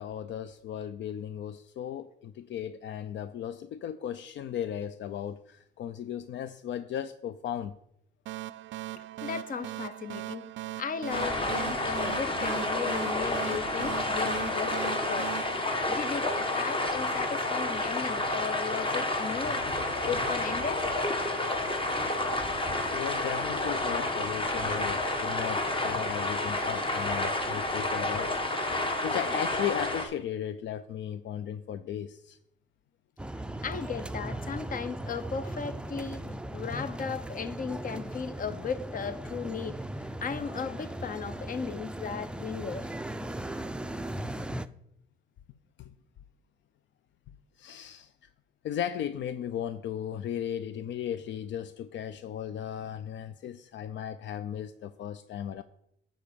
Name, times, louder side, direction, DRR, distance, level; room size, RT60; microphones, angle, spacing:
voice 1, 0.0-7.8 22.2-28.7 29.0-32.4 45.8-45.9 47.6-48.1 48.6-55.6, left 10 dB, 65° left, 0.5 m, -36 dB
sound 1, 8.3-16.6, right 15 dB, 70° right, 0.4 m, -40 dB
voice 2, 8.9-10.5 10.8-15.4 15.8-19.6 20.0-20.9 24.6-25.0 33.6-36.2 36.5-39.8 40.2-42.9, left 6 dB, 45° left, 0.8 m, -36 dB
sound 2, 11.1-30.1, left 2 dB, 25° left, 1.4 m, -30 dB
sound 3, 33.2-44.7, right 1 dB, 5° right, 0.4 m, -38 dB
9.6 x 3.8 x 6.8 m
cardioid pair, 90°, 20 cm